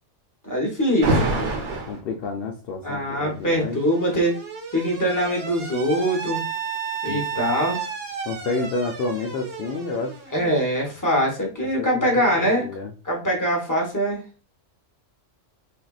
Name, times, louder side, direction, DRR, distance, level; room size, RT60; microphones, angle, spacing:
voice 1, 0.4-1.3 2.8-4.4 4.7-6.4 7.0-7.9 10.3-12.7 13.0-14.2, equal, 15° left, 0 dB, 0.9 m, -23 dB
Alarm, 1.0-2.0 3.2-10.9, right 3 dB, 55° right, 0.9 m, -30 dB
voice 2, 1.7-3.8 7.1-7.3 8.3-10.2 11.8-12.9, left 3 dB, 60° left, 2 dB, 0.6 m, -30 dB
3.7 x 2.7 x 2.3 m, 0.36 s
omnidirectional pair, 1.3 m